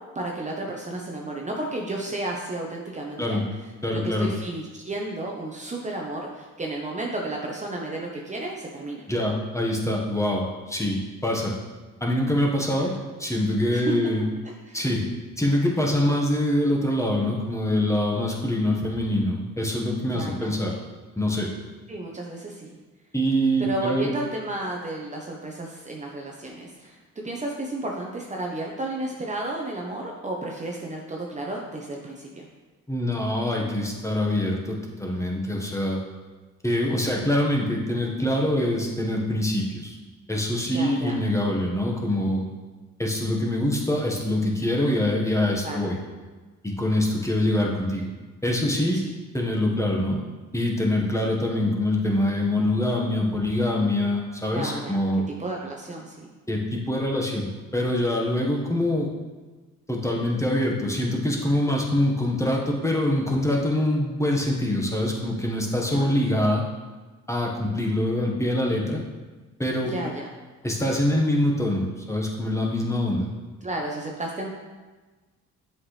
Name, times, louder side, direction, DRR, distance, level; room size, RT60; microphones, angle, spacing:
voice 1, 0.1-3.4 3.9-9.0 12.8-12.9 13.7-14.0 14.4-14.8 20.1-20.6 21.9-22.7 23.6-32.5 36.9-37.2 40.7-41.2 45.6-45.9 54.5-55.0 55.4-56.3 65.9-66.1 69.8-70.3 73.6-74.5, right 2 dB, 25° right, -1 dB, 0.9 m, -32 dB
voice 2, 3.8-4.3 9.1-11.5 12.0-12.9 13.2-14.2 14.7-15.0 15.4-20.7 21.2-21.5 23.1-24.1 32.9-36.0 36.6-40.0 40.3-42.4 43.0-46.0 46.6-48.1 48.4-49.0 49.3-50.2 50.5-55.2 56.5-59.1 59.9-66.6 67.3-69.0 69.6-70.0 70.6-73.3, left 1 dB, 10° left, -1 dB, 1.4 m, -24 dB
7.7 x 5.9 x 3.3 m, 1.3 s
cardioid pair, 90°, 30 cm